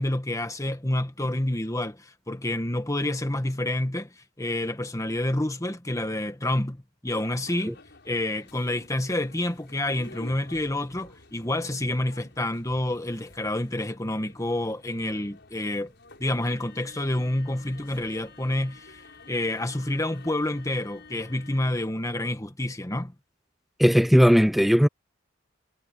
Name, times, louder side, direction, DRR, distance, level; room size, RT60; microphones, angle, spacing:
voice 1, 0.0-2.0 2.3-4.1 4.4-7.8 8.0-15.9 16.2-19.0 19.3-23.1, left 1 dB, 15° left, 1.5 m, -28 dB
sound 1, 7.1-21.8, left 3 dB, 55° left, 6.0 m, -51 dB
voice 2, 23.8-24.9, equal, ahead, 0.6 m, -17 dB
head